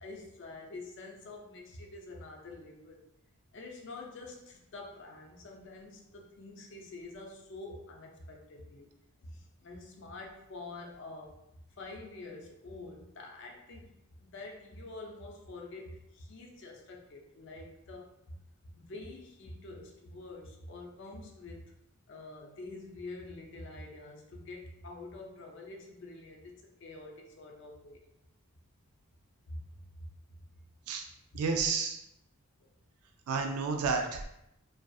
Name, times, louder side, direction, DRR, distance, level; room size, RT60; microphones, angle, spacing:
voice 1, 0.0-3.0 3.5-8.9 9.2-11.4 11.8-13.9 14.2-18.4 18.8-21.7 22.1-28.0 29.5-29.6 30.0-30.1, left 2 dB, 55° left, 1 dB, 0.4 m, -47 dB
voice 2, 31.3-32.0 33.3-34.3, right 4 dB, 80° right, 4 dB, 0.3 m, -31 dB
2.6 x 2.3 x 2.3 m, 0.81 s
head